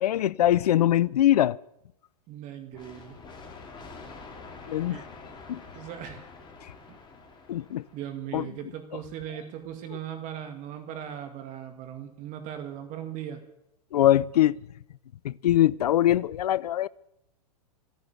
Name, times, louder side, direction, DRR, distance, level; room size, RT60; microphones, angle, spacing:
voice 1, 0.0-1.6 4.7-5.0 5.5-5.6 7.5-7.8 8.3-8.5 13.9-14.6 15.2-16.9, left 12 dB, 75° left, 0.5 m, -22 dB
voice 2, 2.3-3.2 4.9-5.0 5.7-6.2 6.9-7.0 7.9-13.4, right 10 dB, 40° right, 2.1 m, -38 dB
sound 1, 2.7-8.3, left 4 dB, 20° left, 3.1 m, -46 dB
14.5 x 9.3 x 9.5 m
hypercardioid pair, 115°, 20 cm